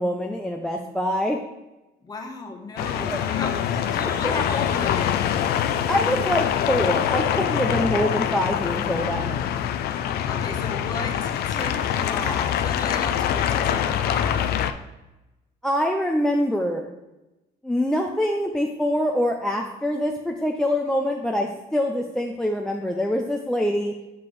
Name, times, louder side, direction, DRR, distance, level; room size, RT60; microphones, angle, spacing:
voice 1, 0.0-1.4 3.0-3.2 4.2-4.3 5.9-9.5 15.6-16.9 17.6-23.9, equal, 5° left, 1 dB, 0.5 m, -25 dB
voice 2, 2.0-5.2 10.3-14.5, left 2 dB, 25° left, 2 dB, 1.1 m, -34 dB
sound 1, 2.8-14.7, left 9 dB, 70° left, 0.4 m, -24 dB
5.9 x 5.8 x 3.2 m, 1.0 s
cardioid pair, 110°, 17 cm